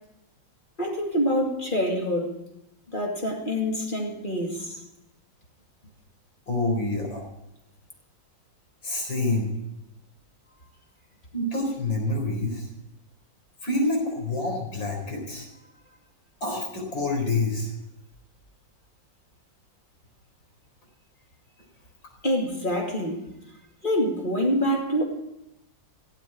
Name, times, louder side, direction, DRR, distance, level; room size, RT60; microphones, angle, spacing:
voice 1, 0.8-2.3 2.9-4.6 22.2-23.2 23.8-25.0, equal, 25° left, 2.6 m, -26 dB
voice 2, 6.5-7.2 8.8-9.5 11.3-12.7 13.6-15.5 16.4-17.7, left 2 dB, 80° left, 5.0 m, -27 dB
17.0 x 8.3 x 8.9 m
omnidirectional pair, 2.0 m